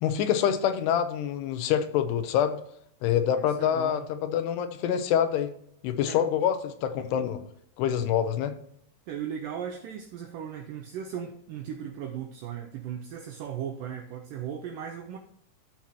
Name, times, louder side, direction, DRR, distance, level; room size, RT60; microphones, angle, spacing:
voice 1, 0.0-2.6 3.0-5.5 5.8-7.4 7.8-8.5, left 9 dB, 85° left, 9 dB, 2.8 m, -26 dB
voice 2, 3.3-4.1 6.1-6.2 9.1-15.2, right 8 dB, 85° right, 2 dB, 1.9 m, -37 dB
13.5 x 5.8 x 2.9 m, 0.68 s
omnidirectional pair, 4.8 m